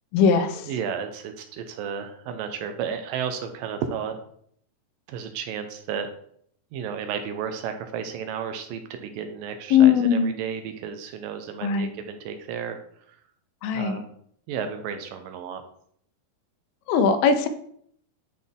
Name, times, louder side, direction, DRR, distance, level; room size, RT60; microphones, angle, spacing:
voice 1, 0.1-0.7 9.7-10.3 11.6-11.9 13.6-14.0 16.9-17.5, left 7 dB, 85° left, 9 dB, 2.5 m, -20 dB
voice 2, 0.7-4.2 5.1-6.1 6.7-12.8 13.1-13.2 13.7-14.1 14.5-15.6, right 7 dB, 80° right, 7 dB, 2.3 m, -33 dB
10.0 x 4.0 x 3.6 m, 0.65 s
omnidirectional pair, 4.1 m